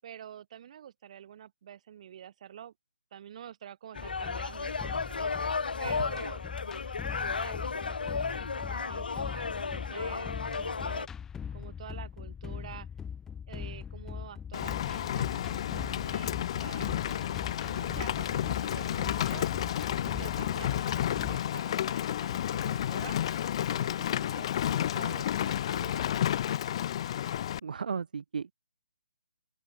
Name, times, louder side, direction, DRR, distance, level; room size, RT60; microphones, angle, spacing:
voice 1, 0.0-2.7 3.1-5.3 5.8-6.4 7.1-11.1 11.5-12.9 13.5-16.9 17.7-19.5 20.1-23.2 23.7-26.3, right 10 dB, 40° right, 6.4 m, -48 dB
sound 1, 3.9-11.1, left 4 dB, 65° left, 0.8 m, -34 dB
sound 2, 4.0-21.4, left 7 dB, 10° left, 1.1 m, -41 dB
Rain, 14.5-27.6, left 11 dB, 35° left, 0.3 m, -31 dB
voice 2, 27.6-28.5, right 6 dB, 55° right, 1.1 m, -34 dB
open air
figure-of-eight pair, 140°, 5 cm